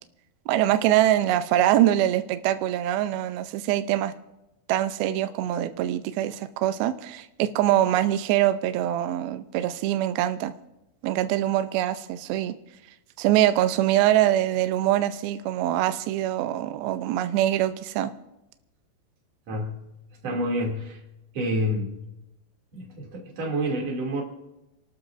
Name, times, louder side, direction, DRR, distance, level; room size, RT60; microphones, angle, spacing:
voice 1, 0.5-4.1 4.7-10.5 11.0-12.5 13.2-18.1, right 13 dB, 75° right, 10 dB, 2.4 m, -23 dB
voice 2, 19.5-19.8 20.2-21.0 21.3-22.0 22.7-24.2, equal, 40° right, -1 dB, 3.5 m, -28 dB
28.5 x 12.5 x 2.7 m, 0.93 s
omnidirectional pair, 4.9 m